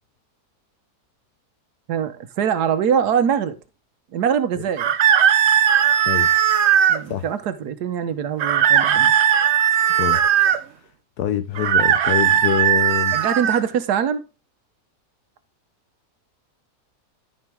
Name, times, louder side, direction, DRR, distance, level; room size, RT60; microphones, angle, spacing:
voice 1, 1.9-3.5 4.1-4.8 6.9-9.1 13.1-14.2, right 8 dB, 80° right, 1.4 m, -23 dB
sound 1, 4.8-7.0 8.4-10.6 11.6-13.6, right 9 dB, 55° right, 0.9 m, -17 dB
voice 2, 11.2-13.2, left 10 dB, 80° left, 1.2 m, -25 dB
12.5 x 5.2 x 3.5 m
omnidirectional pair, 1.7 m